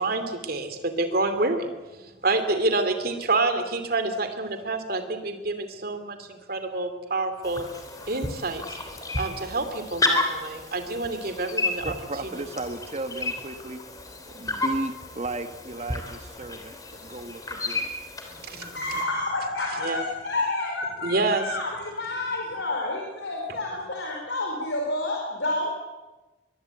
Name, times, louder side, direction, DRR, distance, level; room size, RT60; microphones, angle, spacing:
voice 1, 0.0-1.7 2.0-7.6 8.1-8.8 9.2-11.9 18.4-19.0 19.8-20.0 21.0-21.4, right 2 dB, 50° right, 8 dB, 2.8 m, -28 dB
sound 1, 7.4-19.1, left 2 dB, 20° left, 3.2 m, -32 dB
voice 2, 11.8-13.8 14.3-16.7 17.0-17.9, right 2 dB, 35° right, 8 dB, 1.4 m, -34 dB
voice 3, 18.7-25.7, left 2 dB, 70° left, 0 dB, 4.6 m, -29 dB
23.0 x 22.0 x 8.2 m, 1.1 s
head